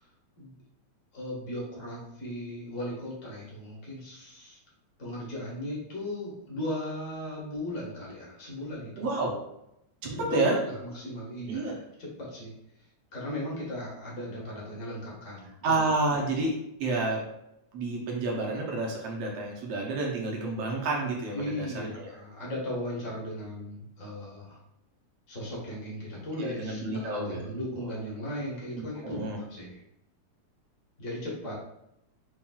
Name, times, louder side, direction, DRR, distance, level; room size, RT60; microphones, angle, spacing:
voice 1, 1.1-4.6 5.0-9.0 10.0-12.5 13.1-15.8 21.3-24.6 25.3-29.8 31.0-31.6, left 1 dB, 55° left, -5 dB, 0.8 m, -37 dB
voice 2, 9.0-9.4 10.2-10.6 11.5-11.7 15.6-17.2 17.7-22.1 26.3-27.4 28.8-29.4, right 3 dB, 70° right, -2 dB, 1.6 m, -30 dB
7.0 x 2.5 x 2.3 m, 0.83 s
omnidirectional pair, 3.4 m